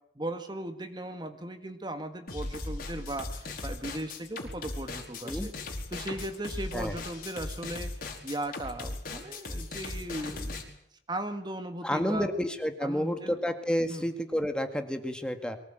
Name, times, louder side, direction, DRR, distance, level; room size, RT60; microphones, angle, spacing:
voice 1, 0.2-5.5 5.9-7.9 8.2-10.5 11.1-12.3 12.8-13.4 13.9-14.1, right 1 dB, 25° right, 8 dB, 1.8 m, -37 dB
sound 1, 2.3-10.6, left 2 dB, 50° left, 4.9 m, -38 dB
voice 2, 11.8-15.6, equal, 5° left, 6 dB, 2.0 m, -30 dB
23.5 x 19.0 x 9.3 m, 0.73 s
head